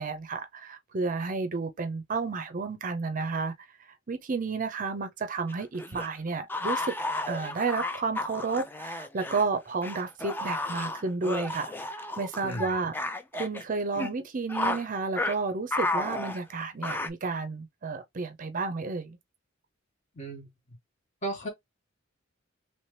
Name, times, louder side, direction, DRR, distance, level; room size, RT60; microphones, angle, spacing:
voice 1, 0.0-3.5 4.1-6.9 7.3-19.2, right 4 dB, 45° right, 0.5 m, -31 dB
sound 1, 5.5-9.4 9.8-13.6 13.9-14.1 14.5-14.8 15.2-15.4 15.7-17.1, left 2 dB, 10° left, 0.4 m, -33 dB
voice 2, 20.2-20.5 21.2-21.5, right 2 dB, 40° left, 1.6 m, -34 dB
3.1 x 2.9 x 3.2 m
head